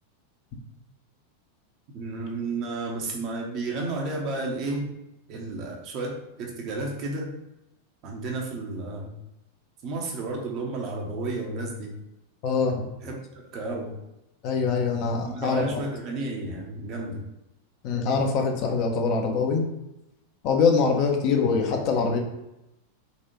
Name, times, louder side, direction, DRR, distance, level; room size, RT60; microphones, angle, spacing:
voice 1, 1.9-4.9 5.3-7.3 8.0-9.2 9.8-12.0 13.0-13.9 15.2-17.2, right 2 dB, 40° right, 0 dB, 0.8 m, -32 dB
voice 2, 12.4-12.7 14.4-15.6 17.8-19.6 20.4-22.2, left 5 dB, 40° left, 2 dB, 0.7 m, -23 dB
4.0 x 2.5 x 2.9 m, 0.90 s
figure-of-eight pair, 90°, 0 cm